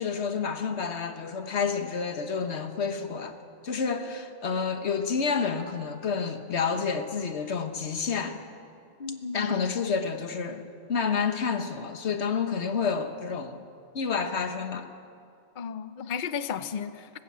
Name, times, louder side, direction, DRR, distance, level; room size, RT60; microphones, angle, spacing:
voice 1, 0.0-3.4 3.6-8.4 9.3-13.6 13.9-14.9, left 5 dB, 90° left, 8 dB, 1.5 m, -29 dB
voice 2, 9.0-9.6 15.6-17.1, left 6 dB, 50° left, 12 dB, 0.8 m, -34 dB
19.5 x 16.0 x 8.6 m, 2.4 s
omnidirectional pair, 1.1 m